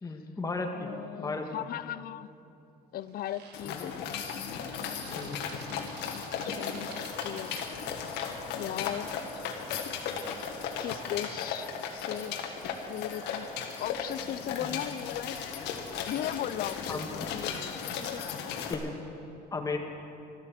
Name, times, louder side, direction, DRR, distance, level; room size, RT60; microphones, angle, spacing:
voice 1, 0.0-1.5 3.6-3.8 5.1-5.5 14.6-14.8 16.9-17.3 18.7-18.9 19.5-19.8, left 3 dB, 20° left, 3 dB, 1.6 m, -35 dB
voice 2, 0.7-2.3 2.9-7.5 7.9-9.2 9.8-10.0 10.3-12.4 12.9-13.5 13.8-15.7 16.0-18.3, left 12 dB, 60° left, 17 dB, 0.5 m, -39 dB
sound 1, 1.3-1.6 3.0-7.7, right 6 dB, 75° right, 1.6 m, -51 dB
sound 2, 3.5-18.7, left 6 dB, 85° left, 1.6 m, -36 dB
13.0 x 12.5 x 7.6 m, 2.6 s
cardioid pair, 110°, 17 cm